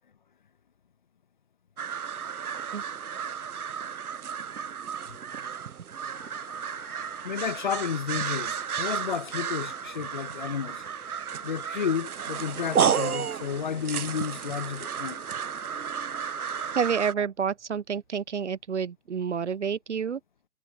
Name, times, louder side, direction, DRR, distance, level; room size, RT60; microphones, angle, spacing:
sound 1, 1.8-17.1, right 8 dB, 85° right, 0.8 m, -32 dB
sound 2, 6.1-16.8, left 12 dB, 10° left, 4.6 m, -52 dB
voice 1, 7.2-10.8 11.4-15.2, left 7 dB, 35° left, 1.2 m, -32 dB
voice 2, 16.8-20.2, right 6 dB, 55° right, 0.8 m, -29 dB
hypercardioid pair, 160°, 43 cm